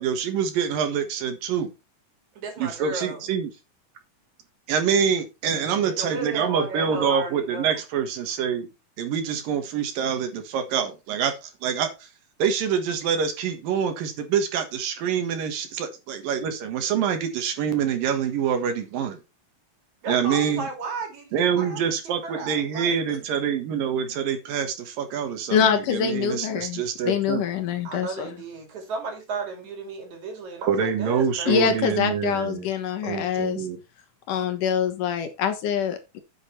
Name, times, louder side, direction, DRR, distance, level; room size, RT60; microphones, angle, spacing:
voice 1, 0.0-1.7 2.6-3.5 4.7-8.7 9.0-12.1 12.4-19.2 20.1-20.7 21.3-27.4 30.7-32.7 33.0-33.8, right 7 dB, 75° right, 3.2 m, -26 dB
voice 2, 2.3-3.3 5.7-7.8 20.0-21.9 22.2-23.2 27.8-31.7, right 4 dB, 55° right, 3.7 m, -34 dB
voice 3, 25.5-28.3 31.5-33.7 34.3-36.2, left 7 dB, 70° left, 2.7 m, -25 dB
8.5 x 7.9 x 4.4 m
omnidirectional pair, 4.0 m